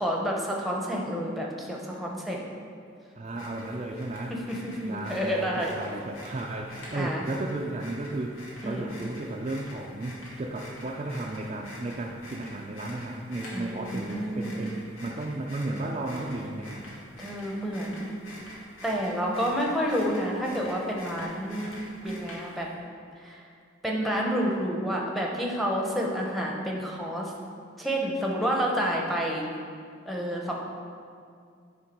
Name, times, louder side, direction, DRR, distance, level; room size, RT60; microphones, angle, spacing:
voice 1, 0.0-2.4 4.3-5.7 6.9-7.2 8.6-8.9 13.5-14.7 17.2-18.2 18.8-22.7 23.2-23.4 23.8-27.3 27.8-29.5 30.1-30.5, equal, ahead, -2 dB, 0.8 m, -29 dB
voice 2, 3.2-4.3 4.8-8.4 8.6-16.8, right 2 dB, 35° right, 0 dB, 0.4 m, -34 dB
sound 1, 3.3-22.7, left 1 dB, 90° left, 2.1 m, -46 dB
9.7 x 3.8 x 5.2 m, 2.2 s
head